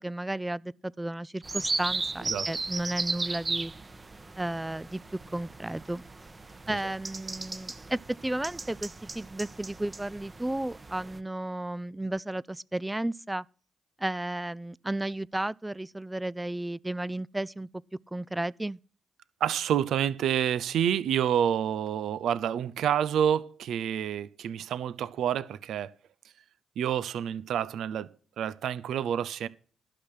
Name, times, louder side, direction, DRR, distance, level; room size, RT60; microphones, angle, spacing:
voice 1, 0.0-3.7 4.4-5.0 5.3-6.0 6.7-13.4 14.0-17.7 18.1-18.8, right 1 dB, 15° right, 0.4 m, -33 dB
sound 1, 1.4-11.2, right 3 dB, 35° right, 1.2 m, -36 dB
voice 2, 19.4-25.9 26.8-29.5, right 9 dB, 75° right, 0.6 m, -28 dB
11.5 x 5.9 x 8.1 m
supercardioid pair, 50°, 0 cm